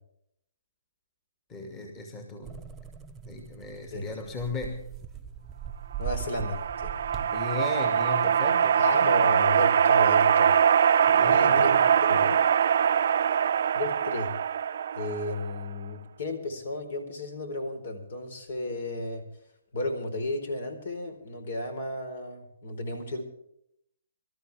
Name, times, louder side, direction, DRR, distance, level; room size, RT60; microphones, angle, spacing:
voice 1, 1.5-2.6 3.2-4.9 7.1-9.3 11.0-11.9 13.2-13.4, left 3 dB, 20° left, 3 dB, 2.3 m, -37 dB
sound 1, 2.4-7.4, right 9 dB, 10° right, 0.9 m, -40 dB
voice 2, 6.0-6.9 8.7-10.6 11.2-11.7 12.1-12.4 13.7-14.3 15.0-19.3 19.7-23.2, left 1 dB, 60° left, 7 dB, 4.3 m, -33 dB
sound 2, 6.1-15.6, right 8 dB, 55° right, 0.6 m, -23 dB
25.0 x 13.5 x 3.5 m, 0.75 s
hypercardioid pair, 155°, 0 cm